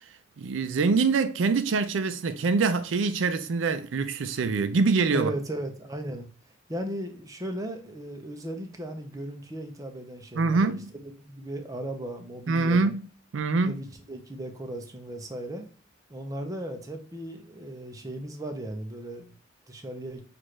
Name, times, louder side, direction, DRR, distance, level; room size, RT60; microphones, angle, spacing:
voice 1, 0.4-5.3 10.4-10.9 12.5-13.1 13.3-13.8, right 4 dB, 85° right, 0.4 m, -24 dB
voice 2, 5.1-6.3 6.7-12.9 13.6-15.7 16.1-19.3 19.7-20.2, right 1 dB, 20° right, 0.6 m, -36 dB
6.1 x 2.5 x 3.1 m
head